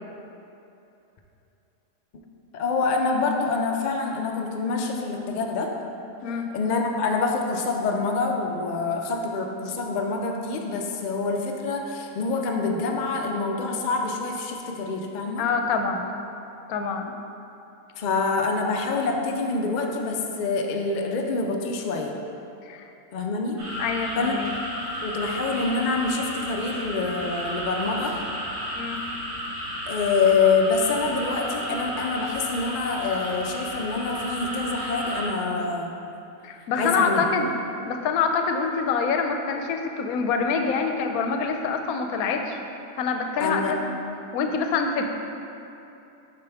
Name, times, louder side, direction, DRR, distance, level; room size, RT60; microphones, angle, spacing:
voice 1, 2.5-5.7 6.5-15.4 18.0-22.1 23.1-23.6 24.2-24.3 25.0-28.2 29.9-35.9 36.7-37.2 43.4-43.7, left 4 dB, 65° left, 2 dB, 0.4 m, -26 dB
voice 2, 6.2-6.5 15.4-16.2 16.7-17.1 22.6-22.9 23.8-24.5 28.7-29.1 36.4-37.5 37.8-42.6 43.0-43.8 44.3-45.1, left 5 dB, 85° left, 5 dB, 1.0 m, -26 dB
sound 1, 23.6-35.3, equal, 55° right, 1.3 m, -33 dB
6.9 x 4.8 x 3.4 m, 2.8 s
omnidirectional pair, 1.5 m